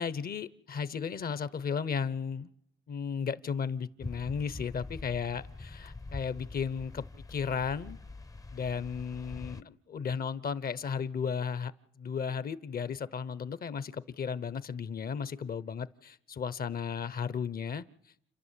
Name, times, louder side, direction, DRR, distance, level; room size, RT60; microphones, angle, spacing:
voice 1, 0.0-2.5 2.9-7.0 7.3-8.0 8.5-11.7 12.0-17.8, left 6 dB, 50° left, 17 dB, 1.0 m, -34 dB
sound 1, 4.0-9.6, left 3 dB, 15° left, 0.7 m, -44 dB
30.0 x 11.0 x 8.4 m, 0.78 s
cardioid pair, 90°, 20 cm